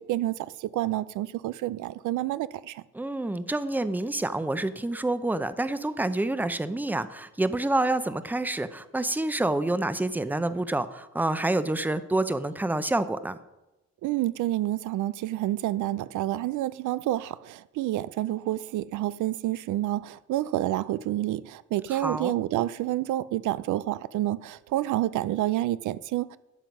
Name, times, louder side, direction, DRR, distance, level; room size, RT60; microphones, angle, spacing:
voice 1, 0.0-2.8 14.0-26.4, right 14 dB, 80° right, 0.5 m, -29 dB
voice 2, 2.9-13.4 21.9-22.3, right 2 dB, 5° right, 0.7 m, -28 dB
12.5 x 7.7 x 5.3 m
cardioid pair, 90°, 30 cm